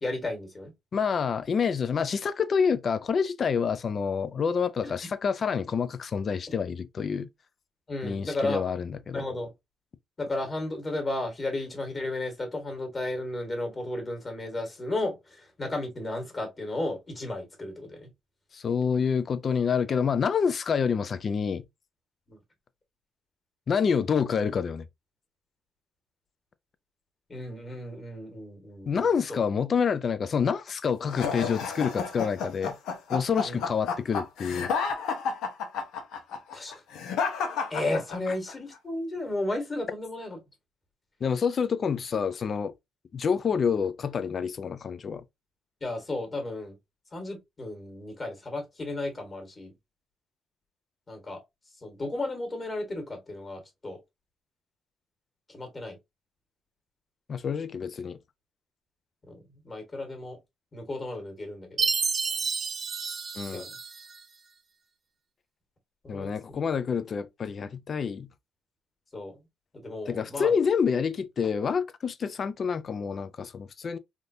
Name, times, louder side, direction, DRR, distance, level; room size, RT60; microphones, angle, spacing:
voice 1, 0.0-0.7 4.8-4.9 7.9-8.7 9.1-9.5 10.2-18.1 22.3-22.4 27.3-29.4 33.4-33.6 36.5-36.7 37.7-40.4 45.8-46.7 47.1-49.7 51.1-51.4 51.8-54.0 55.5-56.0 59.3-60.4 60.7-61.9 63.5-63.8 66.0-66.6 69.1-69.4 69.7-70.6, left 2 dB, 30° left, 1.6 m, -34 dB
voice 2, 0.9-7.3 8.0-9.2 18.5-21.6 23.7-24.9 28.9-32.8 33.1-34.7 41.2-42.7 43.1-45.2 57.3-58.2 63.4-63.7 66.1-68.3 70.1-74.0, left 6 dB, 50° left, 0.4 m, -27 dB
sound 1, 31.1-38.5, left 5 dB, 85° left, 0.8 m, -31 dB
Chime, 61.8-64.2, right 5 dB, 40° right, 0.5 m, -30 dB
3.6 x 2.5 x 2.6 m
cardioid pair, 90°, 0 cm